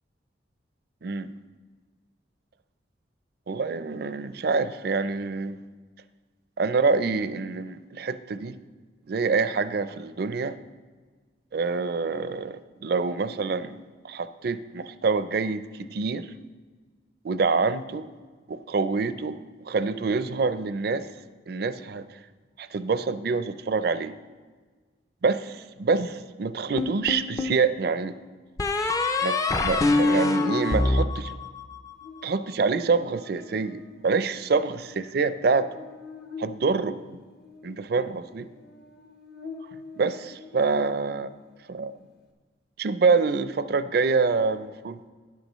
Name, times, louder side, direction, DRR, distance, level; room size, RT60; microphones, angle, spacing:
voice 1, 1.0-1.3 3.5-5.6 6.6-8.6 9.1-10.6 11.5-16.3 17.2-18.1 18.5-21.1 21.5-22.2 22.6-24.2 25.2-28.2 29.2-31.3 32.2-35.7 36.4-37.2 37.6-38.5 40.0-41.3 41.7-41.9 42.8-45.0, right 4 dB, 55° right, 13 dB, 0.4 m, -26 dB
sound 1, 26.8-27.6 28.6-31.9, left 2 dB, 20° left, 0.4 m, -24 dB
Buzz, 32.0-41.5, left 4 dB, 60° left, 1.1 m, -46 dB
13.0 x 10.0 x 3.0 m, 1.4 s
head